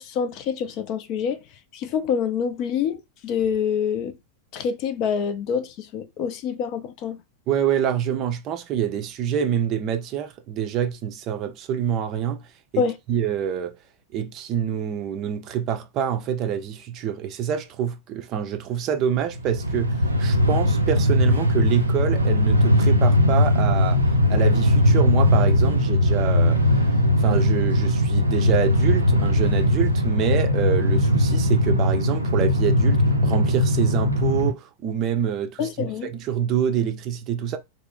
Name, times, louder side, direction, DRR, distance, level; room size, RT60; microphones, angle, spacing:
voice 1, 0.0-1.4 1.7-4.1 4.5-7.2 12.8-13.0 35.6-36.1, left 7 dB, 40° left, 0.5 m, -26 dB
voice 2, 7.5-12.5 12.7-13.8 14.1-24.0 24.3-26.8 27.2-37.6, right 9 dB, 35° right, 0.5 m, -26 dB
Train, 19.3-34.5, left 1 dB, 85° right, 0.5 m, -19 dB
3.2 x 2.1 x 3.7 m
figure-of-eight pair, 90°, 0 cm